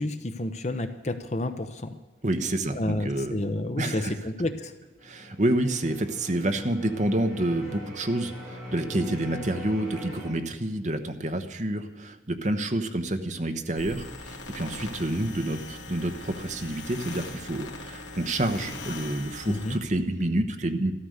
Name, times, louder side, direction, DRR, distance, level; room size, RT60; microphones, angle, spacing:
voice 1, 0.0-1.9 2.7-4.7 19.4-19.8, left 1 dB, 35° left, 9 dB, 0.8 m, -30 dB
voice 2, 2.2-3.3 3.8-4.2 5.0-20.9, right 1 dB, 40° right, 7 dB, 1.0 m, -28 dB
sound 1, 5.0-10.3, equal, ahead, 6.1 m, -41 dB
sound 2, 13.8-19.8, left 3 dB, 75° left, 2.3 m, -41 dB
13.0 x 13.0 x 6.5 m, 1.2 s
head